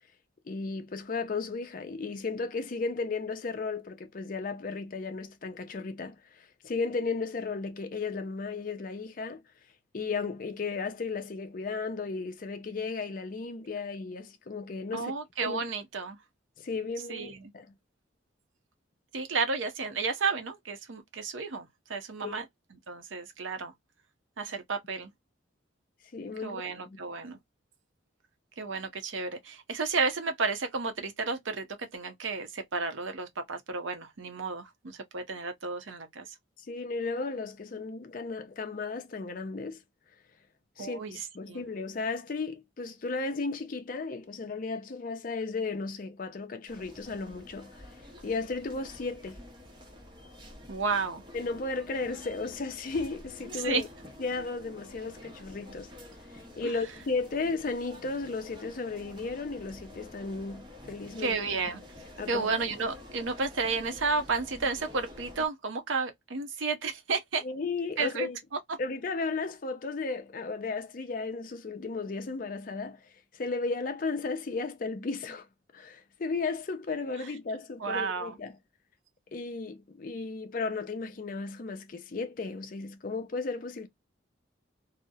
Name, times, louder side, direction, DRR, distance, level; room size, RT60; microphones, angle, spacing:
voice 1, 0.5-9.4 9.9-15.1 15.4-15.6 16.6-17.3 17.5-17.8 22.2-22.3 26.1-27.0 36.6-39.8 40.8-47.7 48.2-49.4 51.3-53.9 54.2-55.9 56.6-61.4 62.2-62.5 67.4-68.4 68.8-75.5 75.7-78.6 79.3-83.9, left 4 dB, 45° left, 0.4 m, -34 dB
voice 2, 14.9-16.2 17.1-17.5 19.1-22.4 22.9-23.7 24.4-25.1 26.4-27.4 28.6-36.3 40.8-41.7 50.7-51.2 53.5-53.8 56.6-56.7 61.2-61.8 62.3-67.4 68.0-68.3 77.8-78.4, right 4 dB, 80° right, 0.7 m, -32 dB
sound 1, 46.7-65.5, left 1 dB, 25° right, 0.7 m, -49 dB
2.7 x 2.0 x 2.3 m
head